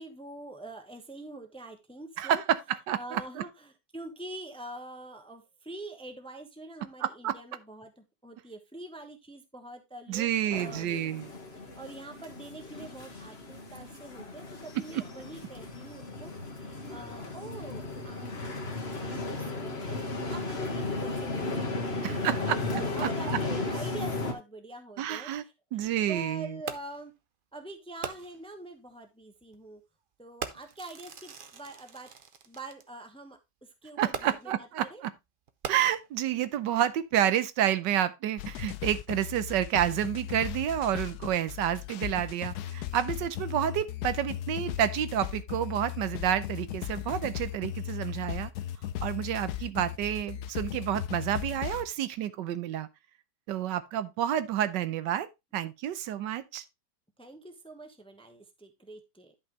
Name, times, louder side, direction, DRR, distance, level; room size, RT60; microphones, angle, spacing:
voice 1, 0.0-2.4 2.9-11.0 11.5-25.5 26.1-27.1 27.5-29.8 30.2-32.1 32.4-35.0 43.5-43.8 49.5-49.6 57.2-59.3, right 2 dB, 5° left, 0.9 m, -45 dB
voice 2, 2.2-2.6 2.9-3.2 7.0-7.3 10.1-11.3 22.0-22.6 23.0-23.4 25.0-25.4 25.7-26.5 34.0-35.1 35.7-48.5 49.0-52.9 53.5-56.6, right 11 dB, 80° right, 1.3 m, -29 dB
sound 1, 10.5-24.3, left 2 dB, 35° left, 1.7 m, -35 dB
Fireworks, 26.7-27.1 28.0-28.5 29.4-29.6 30.4-32.8 34.1-34.6 35.5-36.3 37.0-37.1, right 6 dB, 65° right, 0.5 m, -41 dB
sound 2, 38.4-51.9, left 12 dB, 70° left, 1.1 m, -37 dB
11.0 x 5.7 x 3.1 m
omnidirectional pair, 1.9 m